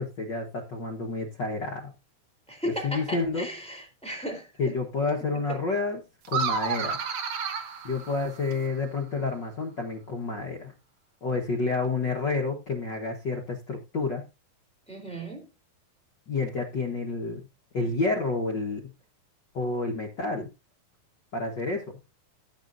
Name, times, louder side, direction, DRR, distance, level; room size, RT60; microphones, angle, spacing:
voice 1, 0.0-1.9 2.6-3.5 4.6-6.0 6.3-7.0 7.8-10.7 11.2-14.2 16.3-17.4 17.7-18.8 19.5-20.5 21.3-21.8, left 3 dB, 75° left, 1.0 m, -29 dB
voice 2, 2.5-4.5 14.9-15.5, right 1 dB, ahead, 3.1 m, -35 dB
sound 1, 6.2-8.7, right 6 dB, 60° right, 1.7 m, -31 dB
16.5 x 7.6 x 2.6 m
omnidirectional pair, 4.1 m